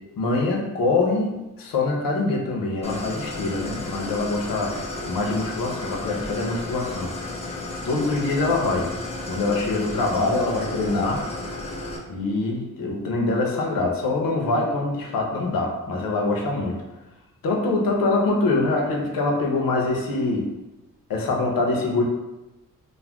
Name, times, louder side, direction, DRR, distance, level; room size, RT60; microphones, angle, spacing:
voice 1, 0.2-7.1 7.8-8.9 9.3-11.2 12.1-16.8 17.4-20.5 21.1-22.0, left 2 dB, 90° left, 0 dB, 0.7 m, -24 dB
Idling, 2.8-12.0, left 2 dB, 20° left, 0.3 m, -33 dB
2.4 x 2.1 x 3.3 m, 1.0 s
wide cardioid pair, 165°, 33 cm